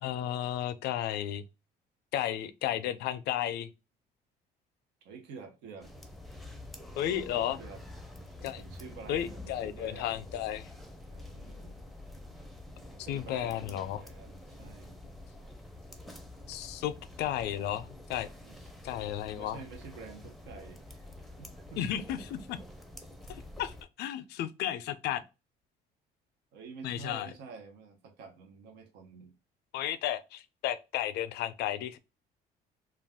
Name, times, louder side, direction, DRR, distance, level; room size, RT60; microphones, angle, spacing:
voice 1, 0.0-1.4 2.1-3.7 7.0-7.6 8.4-8.6 9.1-10.7 13.1-14.1 16.5-18.3 18.8-19.6 21.8-22.6 23.3-25.2 26.8-27.3 29.7-32.0, left 11 dB, 75° left, 0.4 m, -33 dB
voice 2, 5.0-5.9 7.1-7.8 8.4-10.3 11.1-11.8 12.9-14.9 18.4-18.7 19.2-21.8 26.5-29.3, right 5 dB, 85° right, 0.8 m, -49 dB
sound 1, 5.8-23.8, left 1 dB, ahead, 0.5 m, -48 dB
2.4 x 2.2 x 3.4 m
cardioid pair, 110°, 17 cm